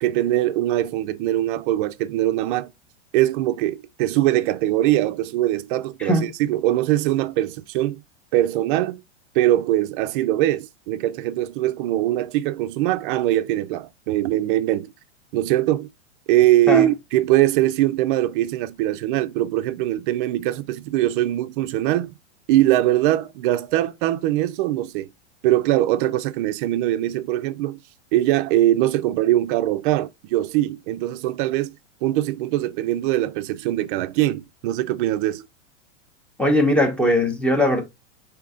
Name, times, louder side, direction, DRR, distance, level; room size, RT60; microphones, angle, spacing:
voice 1, 0.0-2.7 3.1-8.0 8.3-9.0 9.3-14.9 15.3-15.9 16.3-22.1 22.5-25.1 25.4-27.8 28.1-31.7 32.0-35.5, right 14 dB, 45° right, 0.4 m, -22 dB
voice 2, 36.4-37.8, left 1 dB, 5° left, 0.8 m, -19 dB
3.7 x 2.8 x 3.5 m
hypercardioid pair, 130°, 36 cm